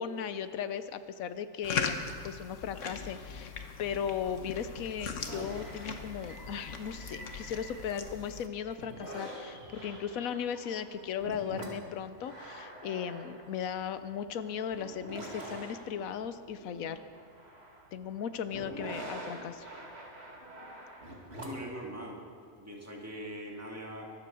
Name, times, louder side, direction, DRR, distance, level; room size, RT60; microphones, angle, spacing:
voice 1, 0.0-3.5 3.8-17.0 17.9-19.7, left 8 dB, 85° left, 11 dB, 1.1 m, -37 dB
sound 1, 1.6-8.5, left 5 dB, 65° left, 1.4 m, -39 dB
sound 2, 5.2-8.2 8.6-21.7, right 1 dB, 50° right, 2.6 m, -46 dB
voice 2, 21.4-22.2 22.6-24.1, equal, 10° right, -1 dB, 2.3 m, -41 dB
24.0 x 8.3 x 6.9 m, 2.3 s
omnidirectional pair, 1.4 m